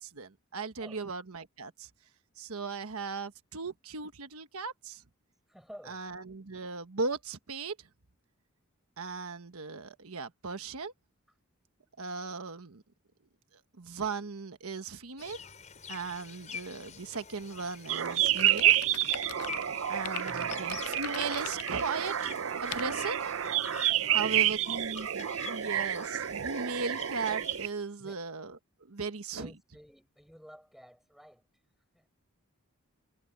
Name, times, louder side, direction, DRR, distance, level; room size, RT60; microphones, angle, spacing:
voice 1, 0.0-1.9 2.4-5.0 5.9-7.9 9.0-10.9 12.0-12.8 13.8-15.4 15.9-18.7 19.9-22.1 22.6-23.3 24.1-28.6 28.9-29.5, right 4 dB, 80° right, 1.2 m, -37 dB
voice 2, 5.5-6.0 20.2-20.6 24.0-24.6 28.0-28.1 29.3-31.5 31.9-32.1, equal, ahead, 6.8 m, -52 dB
sound 1, 15.2-27.7, left 7 dB, 30° left, 5.7 m, -48 dB
sound 2, 17.9-27.7, right 11 dB, 65° right, 0.6 m, -29 dB
sound 3, 18.1-19.6 20.0-21.8 22.7-22.9, left 13 dB, 85° left, 0.4 m, -41 dB
head